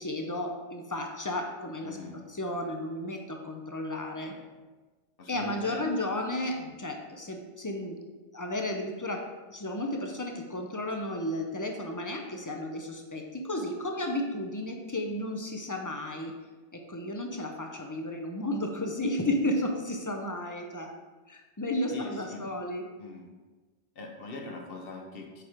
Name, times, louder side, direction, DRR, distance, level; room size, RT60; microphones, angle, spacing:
voice 1, 0.0-2.0 2.3-4.3 5.3-8.0 8.3-9.2 9.5-16.3 16.7-20.9 21.3-22.8, left 1 dB, 30° left, 2 dB, 0.3 m, -33 dB
voice 2, 1.8-2.2 4.2-4.4 5.2-5.9 6.5-6.7 21.9-22.5 23.0-23.3 24.0-25.4, left 3 dB, 60° left, 2 dB, 1.0 m, -42 dB
6.9 x 4.8 x 3.0 m, 1.3 s
omnidirectional pair, 1.1 m